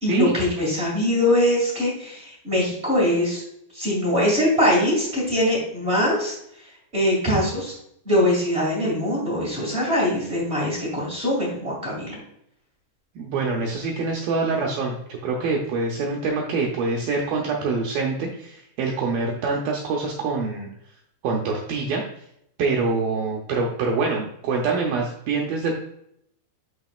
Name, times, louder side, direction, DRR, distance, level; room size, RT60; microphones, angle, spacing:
voice 1, 0.0-3.4 3.7-6.3 6.9-7.7 8.0-12.2, left 1 dB, 50° right, -5 dB, 0.7 m, -22 dB
voice 2, 13.2-15.0 15.2-20.7 21.2-22.0 22.6-25.7, right 4 dB, 80° right, -1 dB, 2.1 m, -25 dB
11.0 x 4.6 x 2.4 m, 0.74 s
omnidirectional pair, 5.2 m